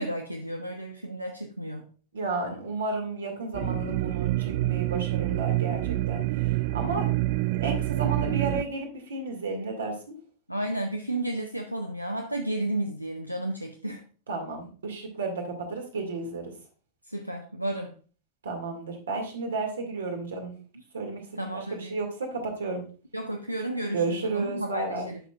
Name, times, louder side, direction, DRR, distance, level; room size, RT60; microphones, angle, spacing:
voice 1, 0.0-1.9 10.5-14.0 17.0-17.9 21.4-22.0 23.1-25.2, right 1 dB, 90° right, 4 dB, 0.7 m, -32 dB
voice 2, 2.1-7.1 7.6-10.1 14.3-16.5 18.4-20.6 20.9-22.8 23.9-25.1, right 3 dB, 65° right, 3 dB, 2.0 m, -32 dB
sound 1, 3.5-8.6, right 17 dB, 50° right, 0.3 m, -27 dB
10.5 x 5.9 x 2.4 m, 0.39 s
figure-of-eight pair, 90°, 0 cm